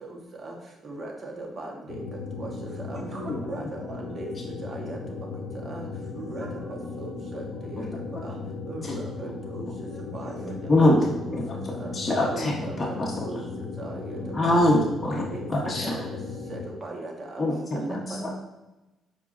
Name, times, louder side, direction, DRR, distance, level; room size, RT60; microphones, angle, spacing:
voice 1, 0.8-2.0 2.4-2.5 2.9-4.3 4.6-5.0 5.6-5.8 6.2-7.9 8.2-8.4 8.7-9.7 10.1-10.9 11.2-11.4 11.8-11.9 12.3-13.4 13.8-14.6 15.1-16.0 16.5-17.4 17.7-18.0, right 2 dB, 45° right, 0 dB, 1.5 m, -38 dB
sound 1, 1.9-16.7, left 4 dB, 85° left, 0.6 m, -37 dB
voice 2, 7.8-8.2 8.8-9.0 10.7-11.1 11.3-11.4 11.9-13.2 14.3-15.2 15.5-15.9 17.4-18.3, left 1 dB, 25° left, -4 dB, 1.3 m, -24 dB
voice 3, 10.4-12.0 12.4-14.4 17.9-18.3, right 2 dB, 25° right, 0 dB, 1.3 m, -41 dB
8.2 x 4.8 x 2.7 m, 1.0 s
cardioid pair, 90°, 0 cm